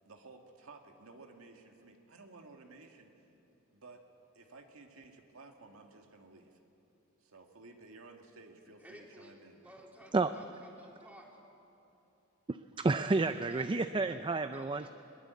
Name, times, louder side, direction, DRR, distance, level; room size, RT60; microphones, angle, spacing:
voice 1, 0.0-3.3 3.7-4.0 4.3-6.6 7.2-9.6, right 3 dB, 75° right, 3 dB, 2.0 m, -55 dB
voice 2, 8.8-9.3 9.6-11.3 13.5-14.2 14.5-14.9, equal, 5° right, -2 dB, 3.6 m, -55 dB
voice 3, 12.5-14.9, right 3 dB, 25° right, 10 dB, 0.4 m, -30 dB
21.5 x 20.5 x 8.3 m, 2.9 s
head